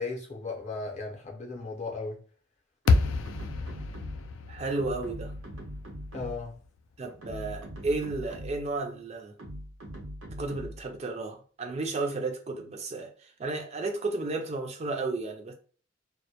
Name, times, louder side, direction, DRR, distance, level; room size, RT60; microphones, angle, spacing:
voice 1, 0.0-2.2 6.1-6.6, left 3 dB, 35° left, 0.6 m, -36 dB
sound 1, 2.8-4.4 4.8-6.6 7.1-8.7 9.4-10.9, equal, 85° right, 0.8 m, -41 dB
sound 2, 2.9-7.1, left 4 dB, 75° left, 0.3 m, -30 dB
voice 2, 4.5-5.3 7.0-9.3 10.4-15.5, right 3 dB, 35° right, 0.3 m, -33 dB
2.1 x 2.1 x 2.7 m
head